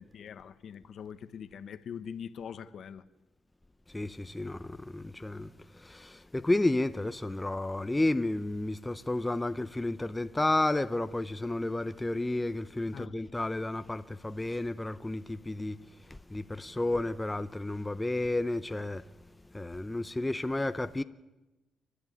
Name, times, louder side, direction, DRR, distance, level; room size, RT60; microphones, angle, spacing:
voice 1, 0.0-3.1 12.9-13.1, left 7 dB, 60° left, 1.1 m, -43 dB
voice 2, 3.9-19.1 19.5-21.0, left 2 dB, 15° left, 0.7 m, -32 dB
29.0 x 11.5 x 9.8 m
cardioid pair, 90°, 0 cm